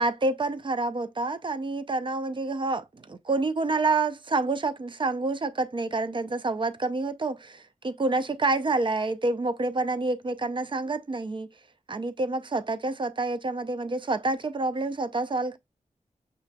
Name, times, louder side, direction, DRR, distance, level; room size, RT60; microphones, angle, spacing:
voice 1, 0.0-11.5 11.9-15.6, right 3 dB, 40° right, 0.5 m, -28 dB
5.6 x 2.4 x 2.2 m
cardioid pair, 60°, 13 cm